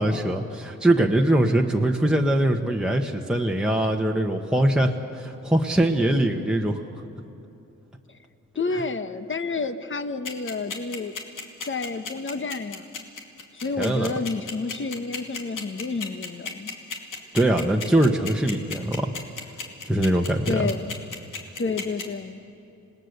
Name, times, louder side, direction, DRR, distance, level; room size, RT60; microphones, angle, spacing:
voice 1, 0.0-6.8 13.8-14.1 17.3-19.1 19.8-20.6, right 1 dB, 5° right, 1 dB, 1.3 m, -22 dB
voice 2, 8.5-11.2 11.6-13.0 13.5-16.7 20.4-20.9 21.6-22.4, left 4 dB, 40° left, 9 dB, 1.2 m, -30 dB
sound 1, 10.2-22.0, left 5 dB, 75° left, 2.6 m, -33 dB
26.5 x 19.0 x 6.8 m, 2.9 s
cardioid pair, 60°, 32 cm